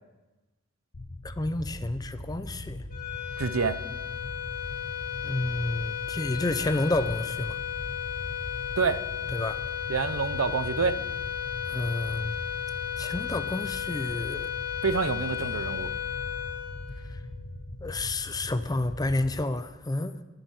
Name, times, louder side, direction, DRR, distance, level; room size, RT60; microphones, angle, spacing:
sound 1, 0.9-19.4, left 1 dB, 70° left, 1.0 m, -40 dB
voice 1, 1.2-2.8 5.2-7.6 9.3-9.6 11.7-12.4 13.0-14.5 17.8-20.1, left 2 dB, 20° left, 12 dB, 0.6 m, -30 dB
sound 2, 2.9-17.5, left 10 dB, 45° left, 3.5 m, -34 dB
voice 2, 3.4-3.8 8.8-9.0 9.9-11.0 14.8-15.9, right 5 dB, 85° right, 14 dB, 0.6 m, -27 dB
11.0 x 8.0 x 10.0 m, 1.1 s
head